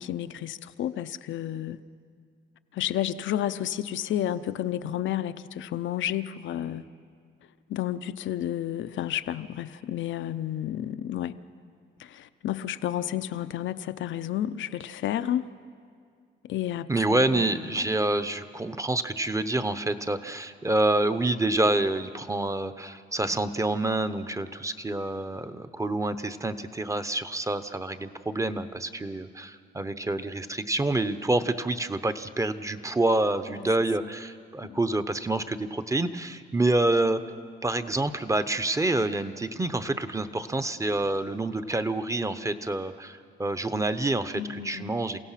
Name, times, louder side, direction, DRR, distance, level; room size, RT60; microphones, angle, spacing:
voice 1, 0.0-1.8 2.7-6.9 7.7-11.4 12.0-15.4 16.5-17.8 33.6-33.7 34.7-34.8 44.3-44.9, left 11 dB, 70° left, 12 dB, 0.7 m, -31 dB
voice 2, 16.9-37.2 37.6-45.2, right 2 dB, 15° right, 10 dB, 0.9 m, -27 dB
28.5 x 16.5 x 5.9 m, 2.2 s
cardioid pair, 90°, 20 cm